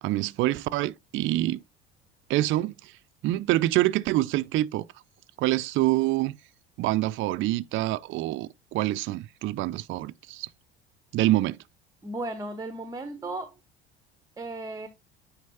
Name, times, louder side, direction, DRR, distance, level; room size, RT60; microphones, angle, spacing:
voice 1, 0.0-1.6 2.3-2.9 3.2-4.9 5.4-6.4 6.8-10.5 11.1-11.6, right 16 dB, 40° right, 0.5 m, -26 dB
voice 2, 12.0-13.5 14.4-14.9, right 2 dB, 10° right, 0.8 m, -35 dB
9.2 x 4.9 x 2.8 m
figure-of-eight pair, 65°, 31 cm